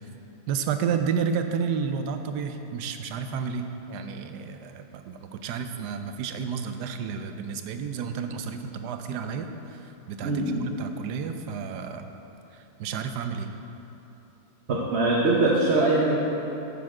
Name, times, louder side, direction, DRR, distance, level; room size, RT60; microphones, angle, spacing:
voice 1, 0.5-9.5 10.1-10.3 10.6-12.1 12.5-13.5, right 6 dB, 80° right, 7 dB, 1.2 m, -31 dB
voice 2, 10.2-10.7 14.7-16.2, right 2 dB, 50° right, -4 dB, 1.0 m, -22 dB
9.3 x 6.9 x 4.8 m, 3.0 s
omnidirectional pair, 1.8 m